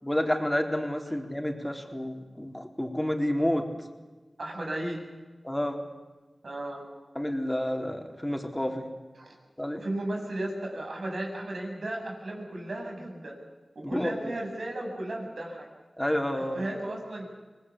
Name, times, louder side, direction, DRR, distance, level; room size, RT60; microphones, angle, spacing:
voice 1, 0.0-3.7 5.4-5.8 7.2-8.9 9.6-9.8 13.8-14.3 16.0-16.7, left 1 dB, 15° left, 4 dB, 4.0 m, -29 dB
voice 2, 4.4-5.0 6.4-6.8 9.2-9.4 9.7-13.4 13.8-15.7 16.4-17.2, right 1 dB, 80° right, 0 dB, 7.4 m, -35 dB
26.0 x 20.0 x 8.5 m, 1.3 s
wide cardioid pair, 50°, 0 cm